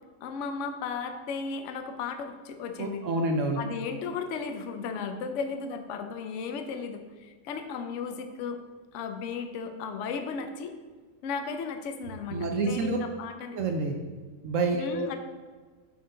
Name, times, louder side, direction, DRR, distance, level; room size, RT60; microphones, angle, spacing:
voice 1, 0.2-3.0 3.6-8.6 8.9-10.7 11.2-13.6 14.8-15.2, left 5 dB, 70° left, 6 dB, 0.7 m, -35 dB
voice 2, 2.8-3.6 12.3-13.0 13.5-14.0 14.4-15.2, right 3 dB, 70° right, 3 dB, 0.7 m, -28 dB
8.1 x 4.4 x 3.8 m, 1.4 s
omnidirectional pair, 2.0 m